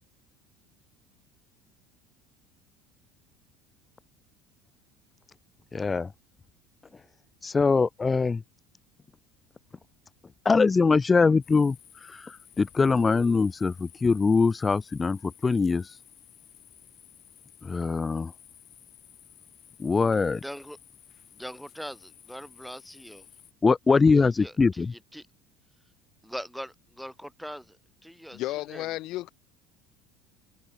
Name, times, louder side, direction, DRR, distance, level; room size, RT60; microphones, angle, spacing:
voice 1, 5.7-6.1 7.4-8.4 10.5-16.0 17.6-18.3 19.8-20.4 23.6-24.9, left 4 dB, 20° left, 0.3 m, -23 dB
sound 1, 11.4-23.5, left 9 dB, 40° left, 2.0 m, -54 dB
voice 2, 20.3-20.8 21.3-23.3 24.2-25.3 26.2-28.4 28.7-29.0, equal, ahead, 1.6 m, -42 dB
voice 3, 28.3-29.3, left 17 dB, 60° left, 1.3 m, -33 dB
supercardioid pair, 110°, 0 cm